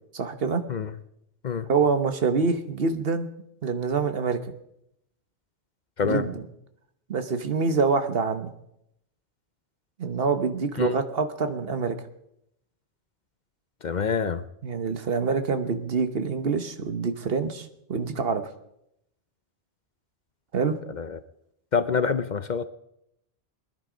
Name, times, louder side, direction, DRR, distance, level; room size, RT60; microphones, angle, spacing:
voice 1, 0.1-0.6 1.7-3.3 3.6-4.5 6.0-6.4 7.1-8.5 10.0-12.0 14.6-18.4 20.5-20.8, right 5 dB, 65° right, 8 dB, 1.3 m, -26 dB
voice 2, 13.8-14.4 21.0-21.2 21.7-22.6, left 6 dB, 50° left, 12 dB, 0.7 m, -26 dB
20.0 x 11.0 x 5.0 m, 0.80 s
omnidirectional pair, 1.1 m